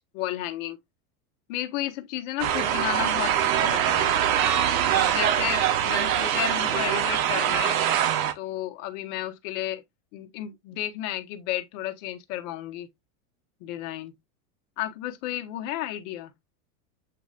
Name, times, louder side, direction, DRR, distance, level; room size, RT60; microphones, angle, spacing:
voice 1, 0.1-0.8 1.5-4.1 4.9-7.9 8.4-9.8 10.1-12.9 13.6-14.2 14.8-16.3, left 13 dB, 55° left, 0.9 m, -33 dB
sound 1, 2.4-8.3, right 10 dB, 65° right, 0.9 m, -23 dB
7.5 x 2.9 x 2.4 m
supercardioid pair, 125°, 44 cm